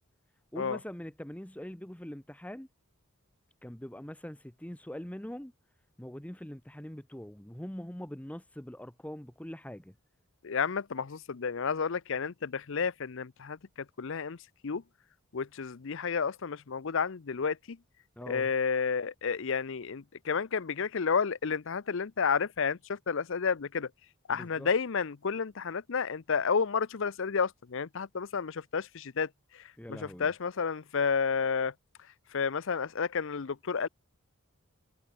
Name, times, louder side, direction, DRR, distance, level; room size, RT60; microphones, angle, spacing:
voice 1, 0.5-2.7 3.6-5.5 6.0-9.9 18.2-18.5 24.3-24.7 29.8-30.3, equal, 5° left, 0.8 m, -43 dB
voice 2, 10.4-14.4 14.6-14.8 15.3-17.8 18.3-23.9 24.3-31.7 32.3-33.9, left 5 dB, 60° left, 0.6 m, -31 dB
head